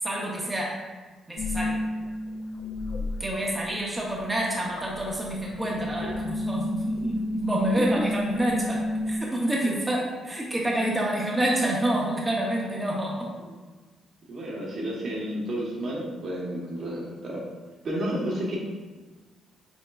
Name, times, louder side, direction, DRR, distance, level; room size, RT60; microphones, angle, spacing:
voice 1, 0.0-0.8 1.3-1.8 3.2-13.3, right 1 dB, 15° right, -3 dB, 0.7 m, -28 dB
sound 1, 1.4-3.7 4.0-9.2, left 1 dB, 65° left, 0.5 m, -31 dB
voice 2, 14.3-17.4 17.8-18.6, right 1 dB, 60° right, -3 dB, 1.1 m, -31 dB
5.1 x 3.7 x 2.3 m, 1.3 s
cardioid pair, 90°, 0 cm